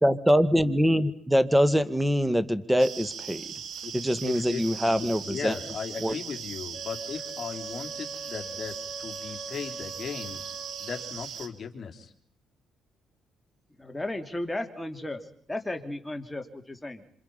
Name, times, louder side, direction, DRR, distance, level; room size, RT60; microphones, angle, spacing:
voice 1, 0.0-3.4 3.9-5.6 6.0-6.2, equal, 5° right, 12 dB, 1.8 m, -23 dB
sound 1, 2.8-11.5, right 7 dB, 70° right, 2.3 m, -39 dB
voice 2, 4.2-10.4 10.8-12.1, left 6 dB, 45° left, 4 dB, 3.6 m, -37 dB
Wind instrument woodwind instrument, 6.7-11.2, right 2 dB, 20° right, 7.7 m, -43 dB
voice 3, 13.8-15.2 15.5-17.0, left 1 dB, 10° left, 5 dB, 2.9 m, -34 dB
27.5 x 26.5 x 5.7 m, 0.64 s
cardioid pair, 90°, 0 cm